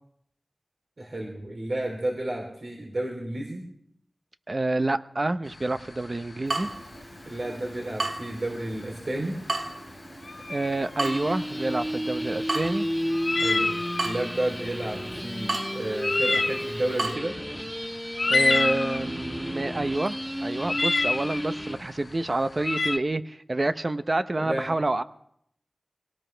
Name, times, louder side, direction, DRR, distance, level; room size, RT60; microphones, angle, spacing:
voice 1, 1.0-3.6 7.3-9.4 13.4-17.3 24.4-24.7, right 1 dB, 65° right, 0 dB, 3.4 m, -31 dB
voice 2, 4.5-6.7 10.5-12.9 18.3-25.0, right 2 dB, 45° right, 11 dB, 0.8 m, -28 dB
sound 1, 5.5-23.0, left 3 dB, 60° left, 0.6 m, -29 dB
Water tap faucet / Drip, 6.5-17.2, right 2 dB, 80° right, 1.7 m, -36 dB
sound 2, 11.0-21.8, equal, 5° right, 1.7 m, -32 dB
23.0 x 18.0 x 3.4 m, 0.71 s
wide cardioid pair, 60°, 0 cm